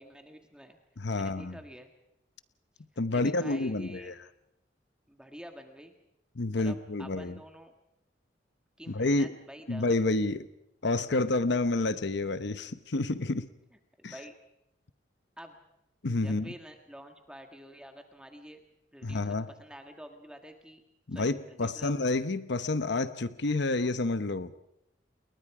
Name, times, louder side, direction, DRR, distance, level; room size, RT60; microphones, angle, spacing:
voice 1, 0.0-0.8 1.1-1.9 3.1-4.1 5.1-5.9 6.5-7.7 8.8-10.0 14.0-14.4 15.4-15.6 16.2-18.6 18.9-20.8 21.1-21.9, equal, 5° right, 4 dB, 1.8 m, -48 dB
voice 2, 1.0-1.6 3.0-4.1 6.4-7.3 8.9-9.3 9.7-10.5 10.8-13.5 14.0-14.1 16.0-16.5 19.0-19.5 21.1-24.5, left 2 dB, 65° left, 12 dB, 0.9 m, -29 dB
29.5 x 22.0 x 4.9 m, 0.86 s
head